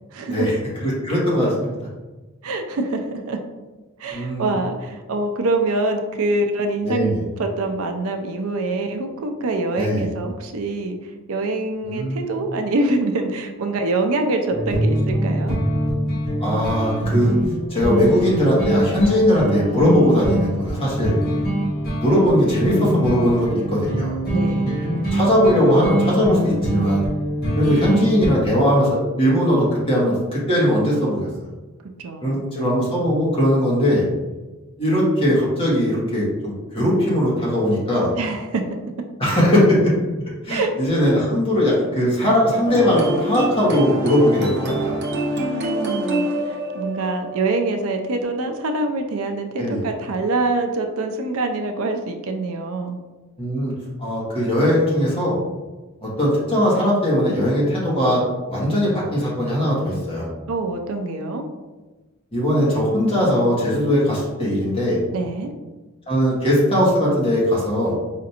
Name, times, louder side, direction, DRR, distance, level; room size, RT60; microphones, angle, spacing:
voice 1, 0.1-0.5 2.4-3.4 4.0-15.6 24.3-24.8 32.0-32.4 38.2-38.6 40.5-40.7 45.3-53.0 60.5-61.4 65.1-65.5, right 2 dB, 70° right, 5 dB, 0.4 m, -25 dB
voice 2, 0.8-1.9 4.1-4.5 6.8-7.2 9.8-10.0 11.8-12.2 16.4-17.3 17.7-21.1 22.0-24.2 25.1-27.0 27.6-31.3 32.2-34.1 34.8-38.1 39.2-39.9 40.4-44.9 49.6-49.8 53.4-53.7 54.0-55.4 56.0-60.3 62.3-65.0 66.1-68.0, equal, 25° left, -6 dB, 1.3 m, -19 dB
sound 1, 14.5-28.3, right 1 dB, 45° left, 1.1 m, -23 dB
sound 2, 42.7-48.2, right 1 dB, 50° right, 0.8 m, -26 dB
5.0 x 2.5 x 2.8 m, 1.2 s
head